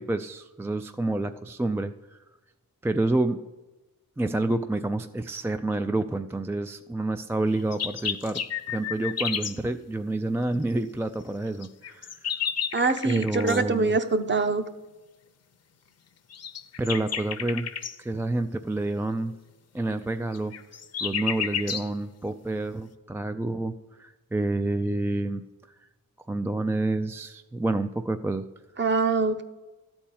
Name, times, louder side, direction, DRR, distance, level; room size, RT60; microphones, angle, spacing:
voice 1, 0.0-1.9 2.8-3.4 4.2-8.4 8.7-12.3 13.0-14.0 16.8-17.7 18.0-19.4 19.7-20.5 21.0-23.7 24.0-25.5 26.3-28.5, right 2 dB, 5° right, 8 dB, 0.3 m, -28 dB
sound 1, 7.5-9.6 11.6-13.6 16.3-17.9 20.3-21.9, left 8 dB, 45° left, 0.7 m, -31 dB
voice 2, 12.7-14.6 28.8-29.4, right 4 dB, 30° right, 9 dB, 0.8 m, -24 dB
13.0 x 4.4 x 8.5 m, 1.1 s
cardioid pair, 105°, 36 cm